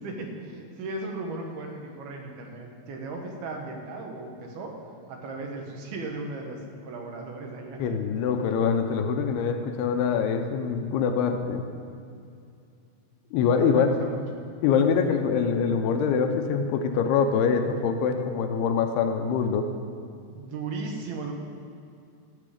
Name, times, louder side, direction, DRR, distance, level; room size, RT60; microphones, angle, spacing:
voice 1, 0.0-4.8 5.1-7.9 13.7-14.4 20.3-21.3, right 3 dB, 75° right, 2 dB, 3.0 m, -36 dB
voice 2, 7.8-11.6 13.3-13.9 14.6-19.7, left 6 dB, 80° left, 6 dB, 2.7 m, -24 dB
15.5 x 7.7 x 5.0 m, 2.4 s
omnidirectional pair, 4.7 m